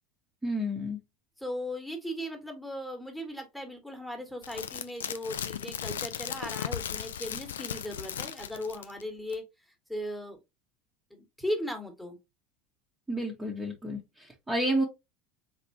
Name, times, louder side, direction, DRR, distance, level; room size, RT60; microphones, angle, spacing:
voice 1, 0.4-1.0 13.1-14.8, equal, 15° right, -1 dB, 1.3 m, -30 dB
voice 2, 1.4-9.4 9.9-10.4 11.1-12.1, left 1 dB, ahead, 4 dB, 1.6 m, -37 dB
sound 1, 4.4-9.0 9.3-9.4, left 9 dB, 70° left, 0.4 m, -36 dB
4.3 x 3.6 x 2.8 m, 0.21 s
figure-of-eight pair, 75°, 0 cm